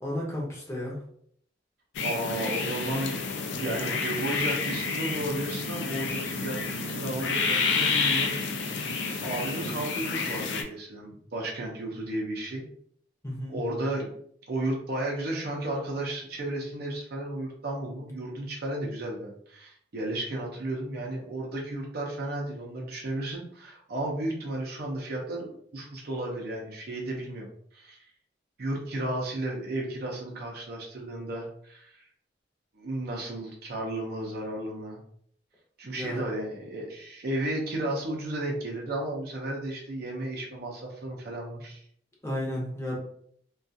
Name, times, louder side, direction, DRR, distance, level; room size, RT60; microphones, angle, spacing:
voice 1, 0.0-1.0 13.2-13.6 35.9-36.2 42.2-43.0, left 1 dB, 15° left, -3 dB, 0.7 m, -33 dB
sound 1, 1.9-10.6, left 4 dB, 70° left, 0.4 m, -29 dB
voice 2, 2.0-3.2 3.6-6.6 6.9-8.4 8.6-12.7 13.5-14.2 14.5-27.5 27.7-28.0 28.6-32.0 32.8-35.0 35.8-41.8, right 1 dB, 55° right, -1 dB, 0.5 m, -33 dB
2.4 x 2.3 x 2.6 m, 0.64 s
head